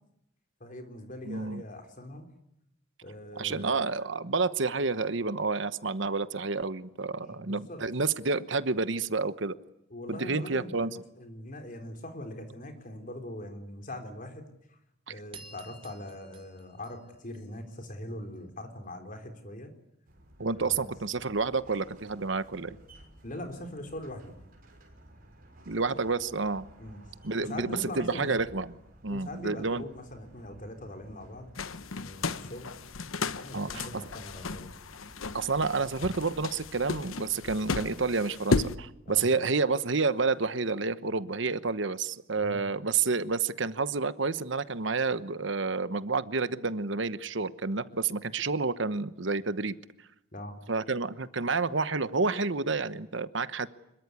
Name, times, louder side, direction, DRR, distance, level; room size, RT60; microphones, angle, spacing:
voice 1, 0.6-2.3 3.0-3.7 7.2-7.8 9.9-14.5 15.1-19.7 20.6-20.9 23.2-24.3 26.8-27.0 27.4-28.4 29.1-31.5 32.0-32.8 33.3-34.7 39.1-39.3 42.4-42.6 50.3-50.6, left 1 dB, 40° left, 6 dB, 4.0 m, -42 dB
voice 2, 1.3-1.6 3.4-9.5 10.1-10.9 20.4-22.8 25.7-26.7 27.2-28.7 29.0-29.8 33.5-33.9 35.3-49.7 50.7-53.7, right 4 dB, 65° right, 14 dB, 1.1 m, -29 dB
sound 1, 15.3-17.9, right 4 dB, 25° right, 2.4 m, -52 dB
sound 2, 20.1-37.2, right 1 dB, 45° right, 6.3 m, -55 dB
sound 3, 31.6-38.8, left 3 dB, 90° left, 1.0 m, -34 dB
26.0 x 22.5 x 9.6 m, 0.82 s
head